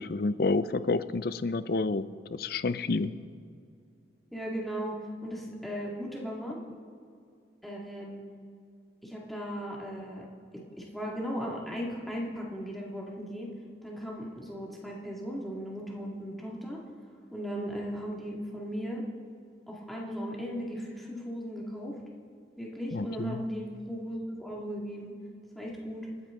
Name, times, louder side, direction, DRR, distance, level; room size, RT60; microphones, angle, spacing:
voice 1, 0.0-2.0 2.3-3.1 22.9-23.4, left 3 dB, 55° left, 14 dB, 0.5 m, -29 dB
voice 2, 4.3-6.6 7.6-8.3 9.0-10.3 10.5-13.5 13.8-16.8 17.3-19.0 19.7-22.0 22.6-25.1 25.6-26.1, equal, ahead, -4 dB, 2.2 m, -37 dB
27.5 x 9.8 x 3.8 m, 2.4 s
head